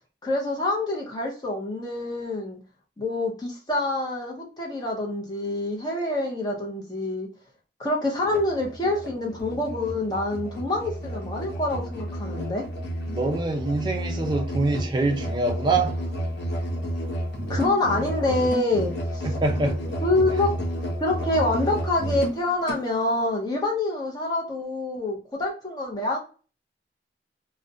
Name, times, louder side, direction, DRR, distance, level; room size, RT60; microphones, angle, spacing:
voice 1, 0.2-2.6 3.0-7.3 7.8-12.7 17.5-19.3 20.0-20.5 21.0-26.2, left 2 dB, 25° left, 0.6 m, -26 dB
Musical instrument, 8.2-22.9, equal, 75° left, 0.5 m, -31 dB
voice 2, 13.1-16.0 19.2-19.8, right 3 dB, 25° right, 0.3 m, -25 dB
2.4 x 2.0 x 2.6 m
head